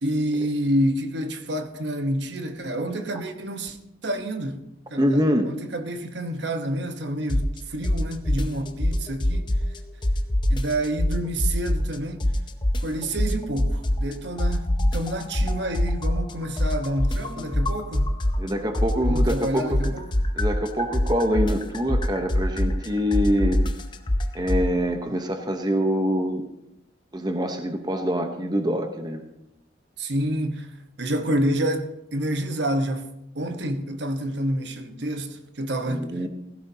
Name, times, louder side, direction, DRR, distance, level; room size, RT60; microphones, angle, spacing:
voice 1, 0.0-3.8 4.0-4.6 4.9-9.5 10.5-12.3 12.8-18.1 19.0-20.1 30.0-30.7 31.0-36.1, right 1 dB, 70° right, 1.1 m, -28 dB
voice 2, 5.0-5.5 18.4-19.9 20.3-23.6 24.3-26.5 27.1-29.2 35.9-36.3, equal, 20° right, 0.9 m, -25 dB
sound 1, 7.3-7.6 7.8-9.8 10.0-12.0 12.2-14.1 14.4-18.5 18.7-24.7, left 1 dB, 25° left, 0.7 m, -23 dB
16.5 x 15.0 x 2.8 m
head